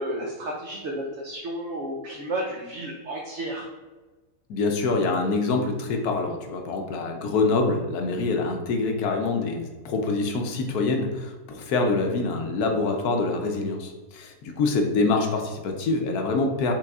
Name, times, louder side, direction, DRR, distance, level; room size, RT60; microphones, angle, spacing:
voice 1, 0.0-3.7, right 1 dB, 60° right, -2 dB, 0.8 m, -32 dB
voice 2, 4.5-16.7, left 3 dB, 75° left, 3 dB, 1.2 m, -25 dB
6.0 x 3.3 x 2.4 m, 1.2 s
omnidirectional pair, 1.7 m